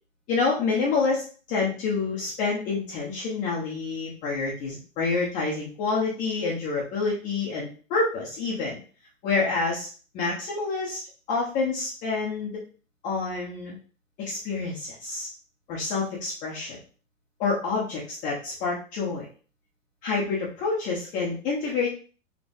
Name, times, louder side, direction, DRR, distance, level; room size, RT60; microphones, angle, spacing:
voice 1, 0.3-8.8 9.2-9.9 10.1-11.0 11.3-12.5 13.0-13.8 14.2-15.3 15.7-16.8 17.4-19.3 20.0-21.9, left 4 dB, 20° left, -5 dB, 0.8 m, -28 dB
4.9 x 3.6 x 2.6 m, 0.38 s
hypercardioid pair, 160°, 38 cm